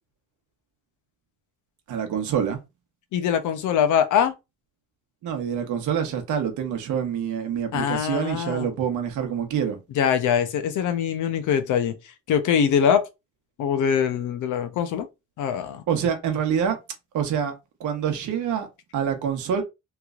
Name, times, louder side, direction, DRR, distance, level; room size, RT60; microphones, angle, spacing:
voice 1, 1.9-2.6 5.2-9.8 15.9-16.8 17.1-17.5 17.8-18.7 18.9-19.6, right 8 dB, 80° right, 1.1 m, -26 dB
voice 2, 3.1-4.3 7.7-8.7 10.0-12.0 12.3-13.1 13.6-15.1 15.4-15.8, left 8 dB, 80° left, 0.7 m, -23 dB
3.3 x 3.0 x 2.5 m
cardioid pair, 90°, 30 cm